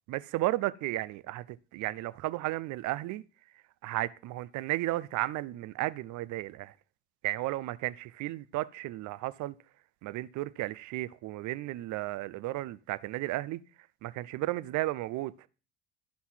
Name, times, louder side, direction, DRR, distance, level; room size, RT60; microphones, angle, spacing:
voice 1, 0.1-3.2 3.8-6.7 7.2-9.5 10.0-13.6 14.0-15.5, right 17 dB, 55° right, 0.8 m, -34 dB
13.5 x 5.6 x 5.8 m
hypercardioid pair, 65°, 36 cm